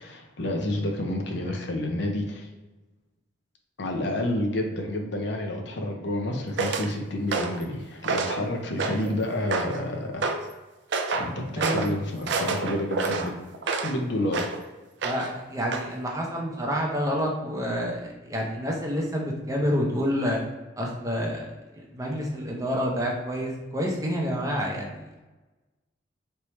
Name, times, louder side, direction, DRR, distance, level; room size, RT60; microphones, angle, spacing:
voice 1, 0.0-2.5 3.8-10.3 11.1-13.4 13.8-14.5, left 1 dB, 60° left, 2 dB, 0.7 m, -29 dB
sound 1, 6.6-6.9 7.3-7.6 8.0-8.4 8.8-9.1 9.5-9.8 10.2-10.4 10.9-11.3 11.6-11.9 12.3-14.0 14.3-14.6 15.0-15.4 15.7-15.9, right 3 dB, 60° right, 0.4 m, -28 dB
voice 2, 11.6-11.9 15.0-20.4 20.8-21.5 21.7-25.2, equal, 15° right, -1 dB, 0.7 m, -28 dB
4.3 x 3.3 x 3.1 m, 1.1 s
head